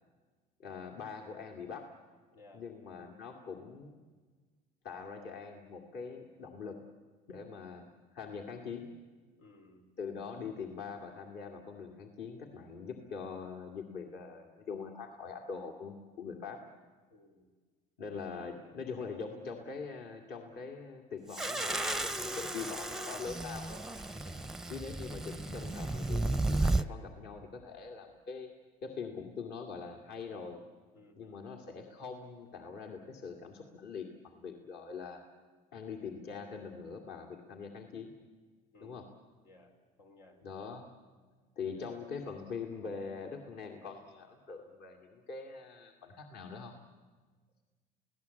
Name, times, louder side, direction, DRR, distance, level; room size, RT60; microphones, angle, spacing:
voice 1, 0.6-2.0 2.5-4.0 4.8-6.9 7.3-8.9 10.0-16.7 18.0-23.8 24.7-28.5 28.8-30.6 31.1-35.2 35.7-38.1 38.8-39.1 40.4-40.9 41.6-46.8, left 5 dB, 55° left, 2 dB, 2.3 m, -43 dB
voice 2, 2.3-2.6 9.4-9.9 17.1-17.5 24.2-24.5 30.9-31.5 38.7-39.1 39.4-39.7 40.0-40.4 41.7-42.0, left 2 dB, 85° left, 2 dB, 4.3 m, -59 dB
sound 1, 21.3-26.9, right 2 dB, ahead, 0.7 m, -34 dB
29.5 x 17.0 x 8.4 m, 1.5 s
supercardioid pair, 95°, 20 cm